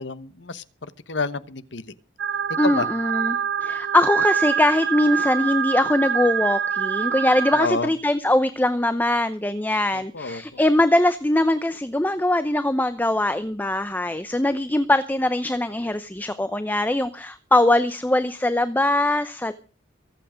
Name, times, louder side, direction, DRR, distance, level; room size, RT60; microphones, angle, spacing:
voice 1, 0.0-1.9 2.6-2.9 7.5-7.9 9.9-10.6, left 4 dB, 70° left, 1.1 m, -29 dB
sound 1, 2.2-7.7, right 7 dB, 90° right, 0.8 m, -25 dB
voice 2, 2.6-19.5, left 1 dB, 10° left, 0.7 m, -22 dB
23.5 x 8.4 x 5.1 m
head